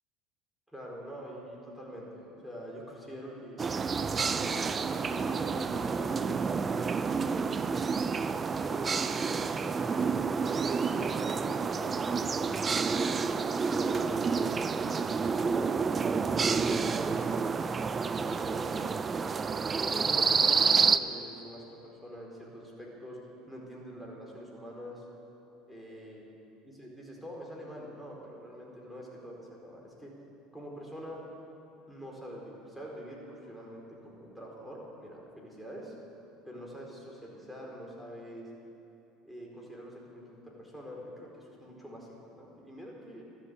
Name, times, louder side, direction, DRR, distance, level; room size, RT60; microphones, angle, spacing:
voice 1, 0.7-3.6 4.3-7.9 8.6-10.1 10.8-17.8 18.1-18.9 19.8-23.2 23.5-25.0 25.7-26.2 26.8-30.1 30.5-31.2 31.9-35.9 36.4-38.5 39.2-43.2, equal, 5° right, -2 dB, 4.6 m, -45 dB
sound 1, 3.6-21.0, right 5 dB, 30° right, 0.6 m, -29 dB
13.0 x 11.5 x 8.4 m, 2.9 s
hypercardioid pair, 80°, 0 cm